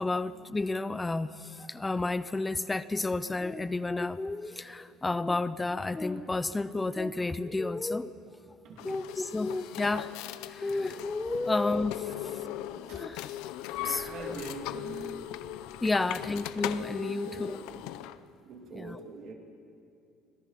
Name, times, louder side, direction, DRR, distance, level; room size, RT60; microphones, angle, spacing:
voice 1, 0.0-8.1 8.8-10.1 10.5-12.1 12.9-13.3 13.8-14.3 15.8-17.6 18.7-19.0, left 3 dB, 10° left, 14 dB, 0.4 m, -31 dB
sound 1, 8.8-18.2, left 14 dB, 85° left, 0.6 m, -38 dB
sound 2, 10.9-11.2 11.5-16.5, right 3 dB, 75° right, 5.3 m, -53 dB
voice 2, 13.8-15.3 15.8-16.1 17.0-17.9 18.4-19.3, right 3 dB, 50° right, 1 dB, 2.7 m, -44 dB
25.5 x 17.5 x 5.8 m, 2.6 s
cardioid pair, 160°, 0 cm